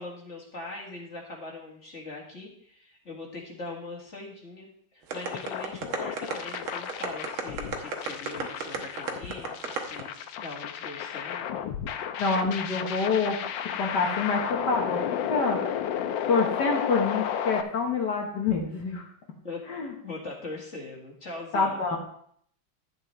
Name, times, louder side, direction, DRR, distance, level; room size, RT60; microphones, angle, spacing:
voice 1, 0.0-4.7 4.9-10.1 10.4-11.5 19.4-19.6 20.0-21.9, left 2 dB, 35° left, -2 dB, 2.1 m, -41 dB
sound 1, 5.1-17.6, left 9 dB, 75° left, 1.3 m, -33 dB
sound 2, 5.1-10.0, right 6 dB, 85° right, 2.0 m, -32 dB
voice 2, 12.2-13.4 13.8-15.6 16.3-19.0 19.7-19.9 21.5-22.0, left 4 dB, 60° left, 0 dB, 1.7 m, -27 dB
11.5 x 8.5 x 3.2 m, 0.65 s
omnidirectional pair, 2.2 m